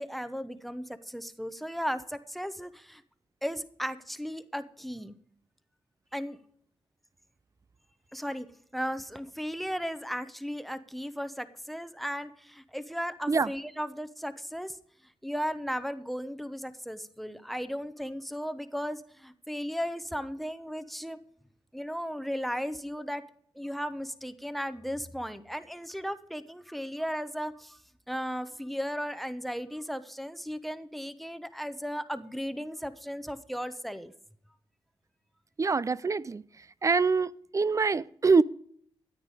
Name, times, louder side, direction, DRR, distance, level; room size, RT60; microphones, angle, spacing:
voice 1, 0.0-3.0 3.4-5.1 6.1-6.4 8.1-14.8 15.2-21.2 21.7-23.2 23.5-27.8 28.1-34.1, equal, ahead, 0.9 m, -36 dB
voice 2, 35.6-36.4 36.8-38.4, right 4 dB, 30° right, 0.4 m, -24 dB
14.0 x 8.8 x 4.9 m
cardioid pair, 65°, 10 cm